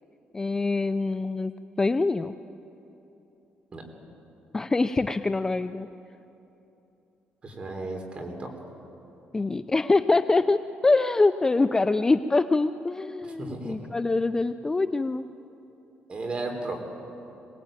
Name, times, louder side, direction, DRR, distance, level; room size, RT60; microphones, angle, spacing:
voice 1, 0.3-1.5 1.8-2.3 4.5-5.9 9.3-15.2, left 3 dB, 15° left, 11 dB, 0.4 m, -24 dB
voice 2, 7.4-8.5 13.2-13.8 16.1-16.8, right 2 dB, 30° right, 3 dB, 3.7 m, -34 dB
23.0 x 19.0 x 9.0 m, 3.0 s
cardioid pair, 135°, 4 cm